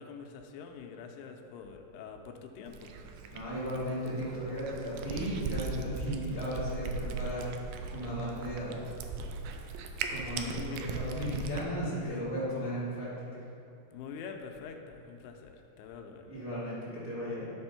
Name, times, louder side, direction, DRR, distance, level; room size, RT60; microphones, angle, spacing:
voice 1, 0.0-2.9 10.3-11.1 12.0-12.2 13.9-16.3, left 6 dB, 85° left, 4 dB, 2.7 m, -45 dB
Cat, 2.7-11.7, right 4 dB, 80° right, 2.2 m, -39 dB
voice 2, 3.3-7.5 7.9-8.8 10.1-13.4 16.2-17.4, equal, 15° right, -11 dB, 1.3 m, -35 dB
11.5 x 4.4 x 5.7 m, 2.7 s
omnidirectional pair, 4.6 m